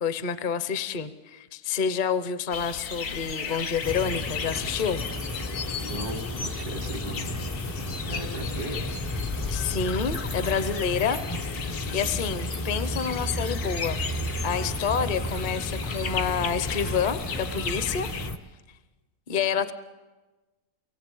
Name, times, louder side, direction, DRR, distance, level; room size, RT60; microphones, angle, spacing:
voice 1, 0.0-5.0 9.5-11.5 11.9-14.0 14.4-18.1 19.3-19.7, left 6 dB, 40° left, 12 dB, 0.8 m, -28 dB
sound 1, 2.5-18.3, left 5 dB, 90° left, 1.8 m, -36 dB
sound 2, 3.8-18.4, left 1 dB, 25° left, 0.4 m, -33 dB
voice 2, 5.7-7.3 8.1-8.9, right 2 dB, 90° right, 5 dB, 2.3 m, -37 dB
23.5 x 18.5 x 8.4 m, 1.2 s
omnidirectional pair, 1.6 m